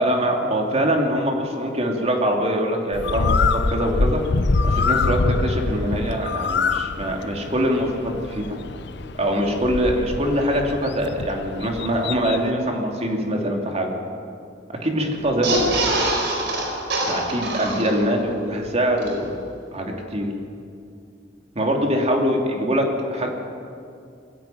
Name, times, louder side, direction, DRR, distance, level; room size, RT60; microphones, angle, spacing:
voice 1, 0.0-4.2 4.6-8.6 9.2-13.9 14.7-16.0 17.0-19.4 19.7-20.3 21.5-23.3, equal, 35° right, 1 dB, 3.0 m, -23 dB
Bird, 2.9-12.5, left 3 dB, 65° left, 0.7 m, -25 dB
sound 1, 15.3-18.3 18.7-18.8 19.0-19.1, right 1 dB, 65° right, 4.5 m, -24 dB
21.5 x 15.0 x 9.3 m, 2.4 s
head